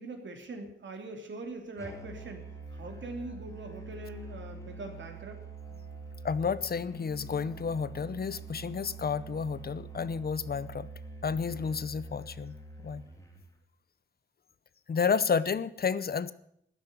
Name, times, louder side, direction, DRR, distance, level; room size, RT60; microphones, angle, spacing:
voice 1, 0.0-2.4 2.7-5.4, right 2 dB, 65° right, 4 dB, 3.2 m, -42 dB
Musical instrument, 1.8-13.5, right 3 dB, 15° left, 3.5 m, -45 dB
voice 2, 6.2-10.9 11.2-12.5 12.8-13.0 14.9-16.3, left 6 dB, 50° left, 16 dB, 0.8 m, -31 dB
12.5 x 10.5 x 9.3 m, 0.70 s
wide cardioid pair, 95°, 20 cm